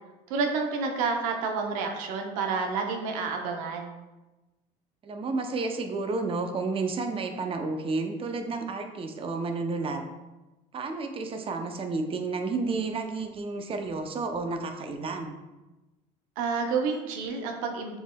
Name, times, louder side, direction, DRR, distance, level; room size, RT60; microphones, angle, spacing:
voice 1, 0.3-4.0 16.4-18.0, right 4 dB, 85° right, 3 dB, 0.7 m, -29 dB
voice 2, 5.0-10.0 10.7-15.4, right 3 dB, 30° right, 5 dB, 0.6 m, -31 dB
6.9 x 3.4 x 2.2 m, 1.1 s
supercardioid pair, 85°, 17 cm